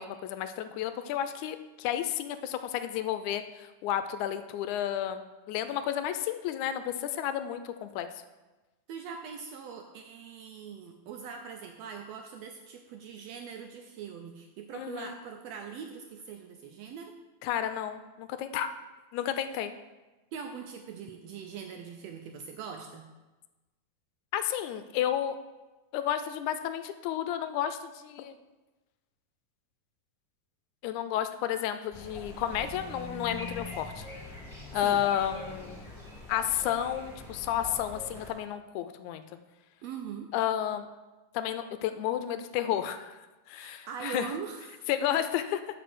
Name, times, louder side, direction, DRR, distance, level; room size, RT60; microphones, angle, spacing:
voice 1, 0.0-8.1 14.7-15.1 17.4-18.7 19.1-19.7 24.3-25.4 25.9-28.4 30.8-34.1 34.7-35.8 36.3-39.2 40.3-40.9 41.3-43.2 43.5-44.3 44.9-45.6, left 10 dB, 80° left, 10 dB, 1.9 m, -32 dB
voice 2, 8.9-17.2 20.3-23.1 34.8-35.0 39.8-40.3 43.5-44.9, right 6 dB, 80° right, 4 dB, 1.5 m, -42 dB
sound 1, 31.9-38.3, left 1 dB, 20° left, 1.8 m, -43 dB
8.1 x 5.0 x 6.0 m, 1.1 s
omnidirectional pair, 3.5 m